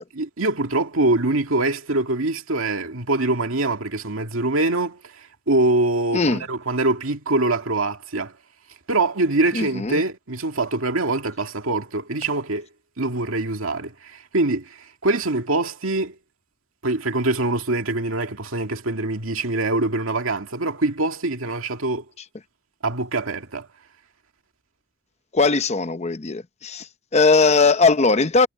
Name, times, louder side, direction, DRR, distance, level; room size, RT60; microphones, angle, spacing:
voice 1, 0.1-8.3 8.9-12.7 13.0-16.2 16.8-22.0 22.8-23.7, right 2 dB, 85° right, 2.2 m, -24 dB
voice 2, 9.5-10.0 25.3-28.5, left 4 dB, 35° left, 0.7 m, -19 dB
head